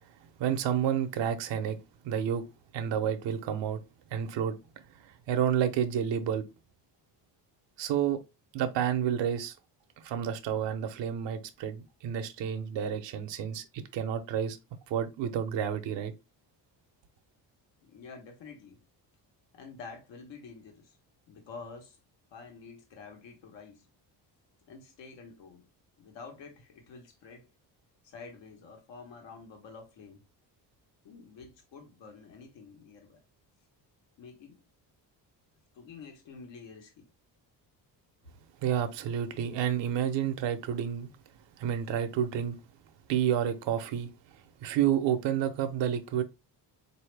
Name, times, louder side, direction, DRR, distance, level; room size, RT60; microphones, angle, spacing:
voice 1, 0.4-1.8 2.0-2.5 2.7-3.8 4.1-4.6 5.0-6.4 7.8-8.2 8.5-9.5 10.0-14.6 14.9-16.1 38.6-41.1 41.6-42.6 43.1-44.1 44.6-46.2, right 9 dB, 75° right, 0.7 m, -30 dB
voice 2, 17.8-18.8 19.5-21.0 21.3-22.0 22.3-23.9 24.7-25.7 26.0-27.5 28.0-30.2 31.0-33.2 34.2-34.6 35.7-37.1, left 4 dB, 80° left, 1.2 m, -48 dB
4.0 x 2.7 x 3.3 m
cardioid pair, 115°, 44 cm